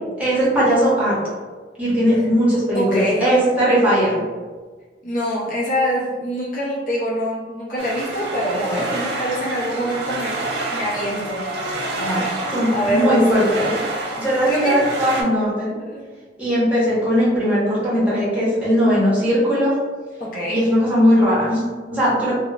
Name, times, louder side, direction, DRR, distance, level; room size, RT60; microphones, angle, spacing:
voice 1, 0.2-1.2 1.8-4.2 12.5-13.7 14.2-15.7 16.4-19.8 20.5-22.3, equal, 10° right, -9 dB, 0.8 m, -18 dB
voice 2, 2.7-3.2 5.0-10.4 10.7-11.4 12.0-12.4 12.7-13.3 14.5-14.8 15.8-16.0 20.2-20.6, equal, 50° left, -5 dB, 0.5 m, -24 dB
sound 1, 7.8-15.2, right 2 dB, 65° right, 0.4 m, -28 dB
2.8 x 2.0 x 2.3 m, 1.4 s
head